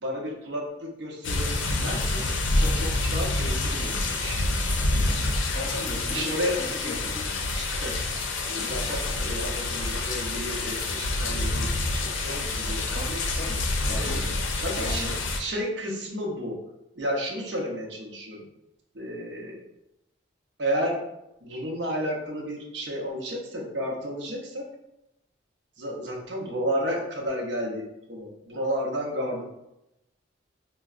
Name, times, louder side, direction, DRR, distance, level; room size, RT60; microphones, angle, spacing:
voice 1, 0.0-2.3 2.5-4.5 6.1-6.6 7.5-8.0 8.5-13.0 13.9-14.2 14.6-16.6 17.0-18.5 18.9-19.6 20.6-21.1 21.4-24.7 25.8-29.4, equal, 65° right, -1 dB, 0.7 m, -32 dB
sound 1, 1.2-15.4, left 2 dB, 85° left, 0.5 m, -27 dB
sound 2, 1.4-6.3, equal, 15° right, 0.4 m, -44 dB
voice 2, 5.5-7.7 12.9-13.6 13.8-14.2 14.7-15.1, left 1 dB, 40° left, 0 dB, 0.6 m, -37 dB
4.5 x 2.1 x 2.4 m, 0.89 s
head